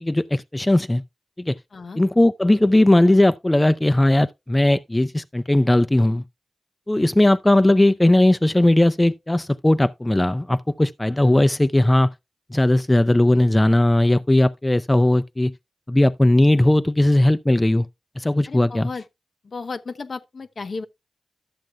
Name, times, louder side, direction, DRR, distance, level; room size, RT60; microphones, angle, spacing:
voice 1, 0.0-1.0 1.4-1.6 2.0-6.2 6.9-12.1 12.5-15.5 15.9-17.9 18.2-18.9, left 1 dB, 15° left, 0.4 m, -18 dB
voice 2, 18.5-19.0 19.4-20.9, left 4 dB, 60° left, 0.8 m, -33 dB
12.0 x 7.6 x 2.3 m
cardioid pair, 60°, 0 cm